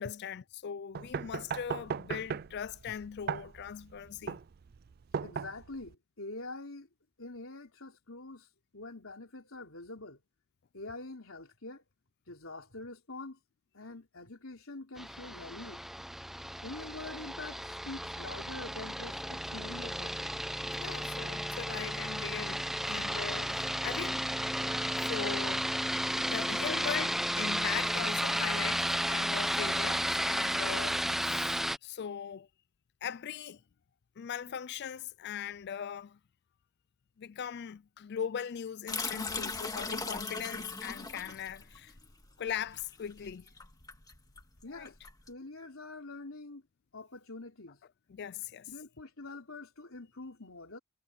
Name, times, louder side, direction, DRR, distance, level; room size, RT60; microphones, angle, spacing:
voice 1, 0.0-4.4 20.8-24.2 25.0-25.6 26.2-32.5 33.0-33.6 34.2-36.2 37.2-41.9 42.4-43.5 44.7-44.9 48.1-48.7, left 8 dB, 50° left, 0.4 m, -40 dB
sound 1, 0.9-5.9, right 6 dB, 45° right, 0.4 m, -38 dB
voice 2, 5.2-6.9 7.2-8.5 8.7-10.2 10.7-11.8 12.3-13.4 13.7-15.8 16.6-20.1 44.6-45.0 45.3-46.6 46.9-47.8 48.7-50.8, left 2 dB, 70° left, 3.9 m, -45 dB
sound 2, 15.0-31.8, equal, ahead, 0.7 m, -33 dB
sound 3, 38.9-45.3, left 3 dB, 15° left, 2.0 m, -39 dB
head